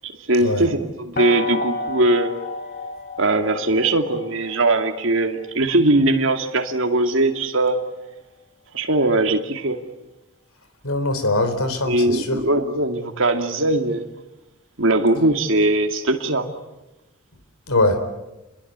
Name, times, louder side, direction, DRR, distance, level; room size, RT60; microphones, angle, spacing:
voice 1, 0.0-2.3 3.2-7.8 8.7-9.8 11.8-14.0 14.8-16.5, right 2 dB, 65° right, 2.5 m, -20 dB
sound 1, 1.2-7.0, left 3 dB, 40° left, 4.7 m, -32 dB
voice 2, 10.8-12.4 17.7-18.0, left 2 dB, 85° left, 4.0 m, -22 dB
28.5 x 22.0 x 8.2 m
head